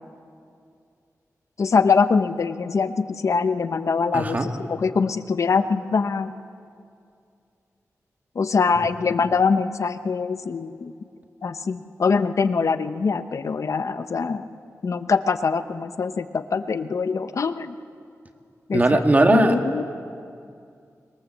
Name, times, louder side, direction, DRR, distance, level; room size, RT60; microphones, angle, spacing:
voice 1, 1.6-6.3 8.3-10.9 11.4-14.5 14.8-17.7 18.7-19.0 19.3-19.8, left 5 dB, 60° left, 10 dB, 0.9 m, -23 dB
voice 2, 4.1-4.5 8.8-8.9 18.7-19.6, right 2 dB, 30° right, 5 dB, 1.8 m, -19 dB
26.0 x 21.5 x 7.4 m, 2.4 s
wide cardioid pair, 125°, 6 cm